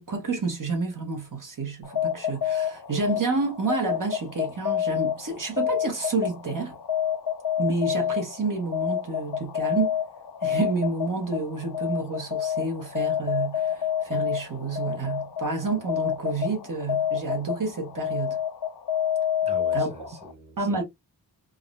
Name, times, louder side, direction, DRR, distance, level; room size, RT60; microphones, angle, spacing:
voice 1, 0.0-6.8 7.6-9.9 10.4-18.4 19.7-20.1 20.6-20.8, right 3 dB, 50° right, 0.9 m, -29 dB
sound 1, 1.8-20.3, left 10 dB, 70° left, 0.6 m, -29 dB
voice 2, 19.4-20.8, right 3 dB, 15° right, 1.0 m, -43 dB
3.5 x 2.1 x 2.4 m
wide cardioid pair, 75°, 41 cm